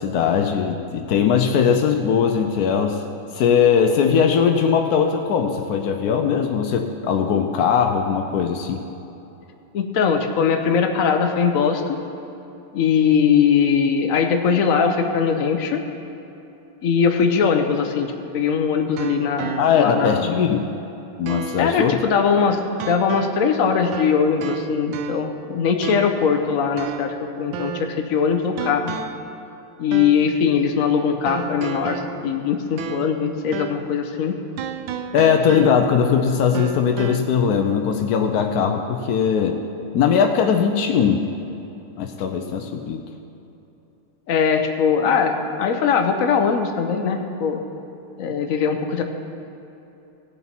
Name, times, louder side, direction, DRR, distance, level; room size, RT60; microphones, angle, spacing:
voice 1, 0.0-3.0 3.3-8.8 19.6-20.7 21.2-22.0 35.1-39.6 39.9-41.3 42.0-43.0, left 7 dB, 85° left, 5 dB, 0.8 m, -20 dB
voice 2, 9.7-12.0 12.7-15.8 16.8-20.4 21.6-28.9 29.8-34.4 44.3-47.6 48.2-49.0, left 6 dB, 60° left, 5 dB, 0.9 m, -21 dB
sound 1, 18.0-20.1 20.5-20.6 21.3-21.8 22.8-23.5 23.9-25.4 25.8-26.3 26.8-28.1 28.6-29.3 29.9-30.3 31.3-33.3 33.5-33.9 34.6-36.1 36.5-37.2, right 8 dB, 75° right, 1.2 m, -33 dB
17.5 x 7.0 x 4.4 m, 2.9 s
omnidirectional pair, 2.3 m